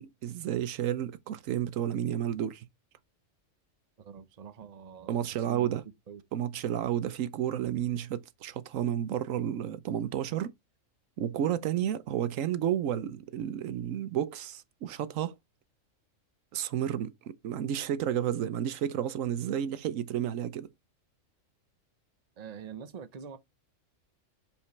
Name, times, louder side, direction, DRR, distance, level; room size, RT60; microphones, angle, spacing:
voice 1, 0.0-2.6 5.1-5.8 6.3-10.5 11.2-15.4 16.5-20.7, right 10 dB, 80° right, 1.1 m, -31 dB
voice 2, 4.0-5.7 6.1-6.2 22.4-23.4, right 7 dB, 35° right, 0.8 m, -45 dB
6.7 x 5.5 x 3.1 m
omnidirectional pair, 1.3 m